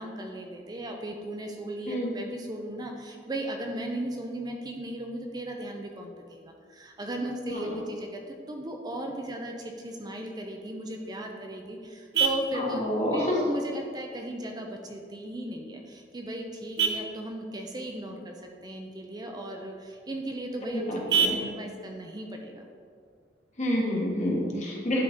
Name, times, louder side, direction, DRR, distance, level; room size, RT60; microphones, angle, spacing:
voice 1, 0.0-12.8 13.1-18.4 18.6-20.8 21.1-21.2 21.5-22.7, right 1 dB, 25° right, 2 dB, 0.5 m, -36 dB
voice 2, 7.5-7.8 12.5-13.4 20.7-21.4 23.6-25.0, equal, 40° left, -2 dB, 1.4 m, -28 dB
Vehicle horn car horn honking, 10.9-23.9, right 6 dB, 65° right, 0.7 m, -35 dB
11.0 x 4.0 x 3.6 m, 2.1 s
head